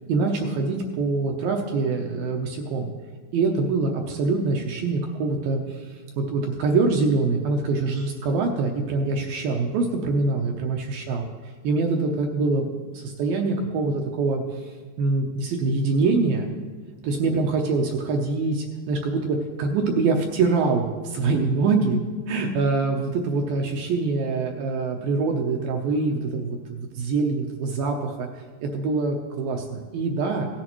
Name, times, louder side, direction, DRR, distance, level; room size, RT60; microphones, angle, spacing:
voice 1, 0.1-2.9 3.3-11.2 11.6-16.5 17.0-22.0 22.3-30.5, right 3 dB, 75° right, 2 dB, 2.2 m, -24 dB
17.0 x 10.5 x 3.0 m, 1.5 s
omnidirectional pair, 4.8 m